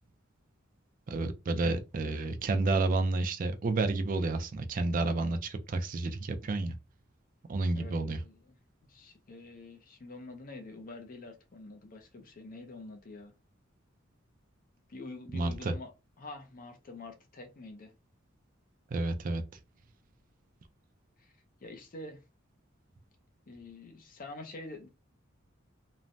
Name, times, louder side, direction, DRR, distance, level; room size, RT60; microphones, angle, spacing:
voice 1, 1.1-6.7 7.5-8.2 15.3-15.7 18.9-19.4, right 3 dB, 40° right, 0.4 m, -30 dB
voice 2, 7.7-8.5 8.8-13.3 14.9-15.9 16.2-18.0 21.2-21.3 21.6-22.2 23.5-24.9, left 2 dB, 45° left, 0.6 m, -46 dB
3.1 x 2.1 x 2.5 m
head